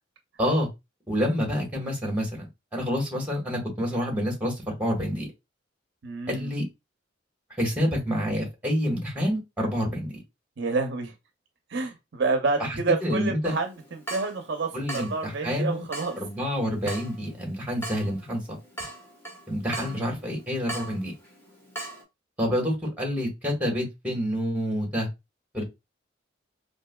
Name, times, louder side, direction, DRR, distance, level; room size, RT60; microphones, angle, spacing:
voice 1, 1.1-2.4 2.7-5.3 6.3-6.6 7.6-10.2 12.7-13.5 14.7-15.9 16.2-18.6 19.5-21.1 22.4-25.1 25.5-25.6, equal, 5° right, 0 dB, 1.5 m, -28 dB
voice 2, 6.0-6.5 10.6-11.1 11.7-16.2, right 3 dB, 60° right, 5 dB, 0.6 m, -28 dB
Water tap faucet / Drip, 13.4-22.0, right 2 dB, 10° left, 1.2 m, -41 dB
4.5 x 2.6 x 2.3 m, 0.23 s
head